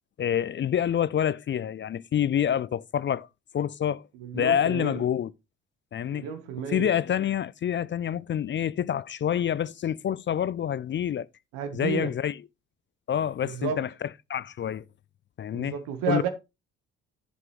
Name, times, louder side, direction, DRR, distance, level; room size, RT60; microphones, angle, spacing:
voice 1, 0.2-3.3 3.5-4.1 4.3-5.3 5.9-6.3 6.6-11.3 11.7-12.4 13.1-14.8 15.4-15.8 16.1-16.2, left 9 dB, 35° left, 0.4 m, -27 dB
voice 2, 4.1-5.0 6.1-6.9 11.5-12.1 13.4-13.8 15.5-16.3, right 7 dB, 75° right, 1.4 m, -31 dB
10.5 x 7.1 x 3.2 m
hypercardioid pair, 45°, 35 cm